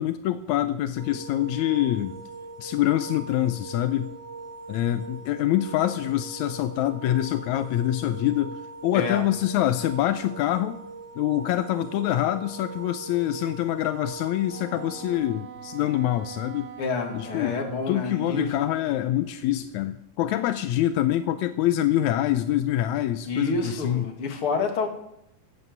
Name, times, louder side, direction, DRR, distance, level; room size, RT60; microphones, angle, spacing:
voice 1, 0.0-2.2 2.6-4.1 4.7-10.8 11.1-16.7 17.1-24.1, left 13 dB, 80° left, 10 dB, 1.7 m, -25 dB
sound 1, 1.0-15.1, right 3 dB, 40° right, 1.5 m, -41 dB
voice 2, 8.9-9.3 16.8-18.5 23.2-24.9, left 4 dB, 40° left, 4 dB, 2.8 m, -28 dB
Wind instrument woodwind instrument, 14.5-19.0, right 9 dB, 65° right, 1.8 m, -44 dB
16.5 x 8.3 x 8.1 m, 0.84 s
omnidirectional pair, 4.0 m